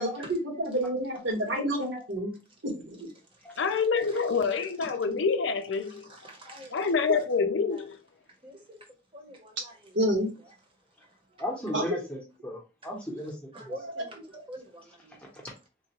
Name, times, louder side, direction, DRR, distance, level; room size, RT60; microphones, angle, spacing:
voice 1, 0.0-2.3 2.6-3.1 7.1-7.2 9.9-10.3 11.7-11.8 13.8-14.0, equal, 75° right, 1.4 m, -29 dB
voice 2, 3.6-6.0 6.7-8.0, left 5 dB, 75° left, 0.4 m, -27 dB
voice 3, 6.0-6.9 8.4-8.8 9.1-10.1 13.5-14.2 14.5-15.2, equal, 25° right, 1.0 m, -46 dB
voice 4, 11.4-13.8 15.1-15.4, equal, 5° left, 0.9 m, -36 dB
3.8 x 2.3 x 2.9 m
head